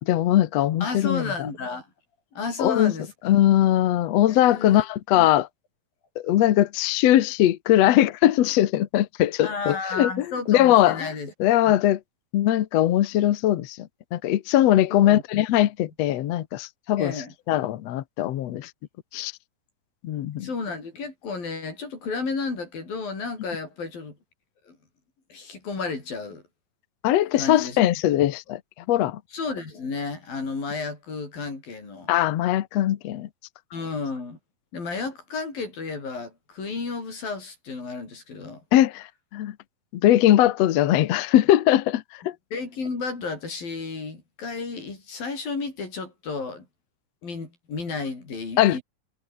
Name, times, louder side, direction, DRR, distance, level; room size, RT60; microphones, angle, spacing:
voice 1, 0.0-1.3 2.6-2.9 3.2-5.5 6.2-11.1 11.4-12.0 12.3-17.1 17.5-18.7 19.1-19.3 20.0-20.5 27.0-28.6 28.9-29.2 32.1-33.3 38.7-39.5 39.9-42.3 48.6-48.8, left 13 dB, 65° left, 1.8 m, -21 dB
voice 2, 0.8-1.9 2.3-3.1 4.3-4.8 5.2-5.3 9.4-11.3 14.9-15.2 17.0-17.3 20.4-24.2 24.7-24.8 25.3-26.4 27.3-27.8 29.3-32.1 33.7-34.4 34.7-38.6 42.5-46.7 47.2-48.8, left 4 dB, 85° left, 9.0 m, -32 dB
omnidirectional pair, 4.0 m